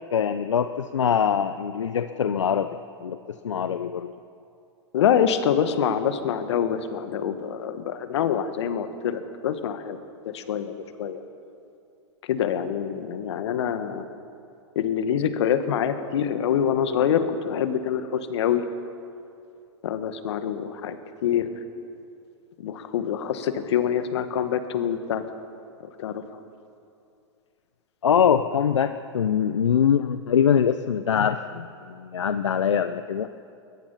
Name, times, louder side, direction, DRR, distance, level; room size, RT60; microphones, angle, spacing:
voice 1, 0.1-2.7 3.0-4.1 28.0-33.3, left 8 dB, 85° left, 10 dB, 0.7 m, -23 dB
voice 2, 4.9-10.0 10.2-10.7 11.0-11.2 12.3-14.0 14.7-18.6 19.8-21.5 22.6-25.2 26.0-26.2, left 8 dB, 70° left, 9 dB, 1.7 m, -25 dB
22.0 x 20.5 x 5.8 m, 2.5 s
hypercardioid pair, 105°, 15 cm